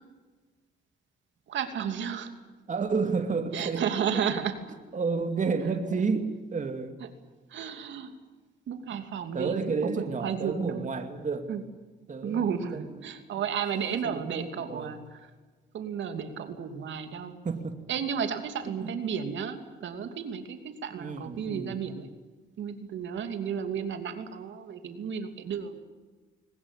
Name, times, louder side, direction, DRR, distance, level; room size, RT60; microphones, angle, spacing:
voice 1, 1.5-2.3 3.5-4.5 7.5-8.1 8.7-10.9 11.5-11.6 12.2-15.2 15.7-17.4 17.9-22.1 22.6-25.8, right 7 dB, 70° right, 6 dB, 2.9 m, -33 dB
voice 2, 2.7-3.9 4.9-7.0 9.3-11.5 12.1-12.9 14.0-15.0 17.4-17.8 18.8-19.2 21.0-21.8, right 4 dB, 40° right, 5 dB, 2.4 m, -31 dB
21.5 x 19.5 x 9.9 m, 1.3 s
cardioid pair, 90°, 20 cm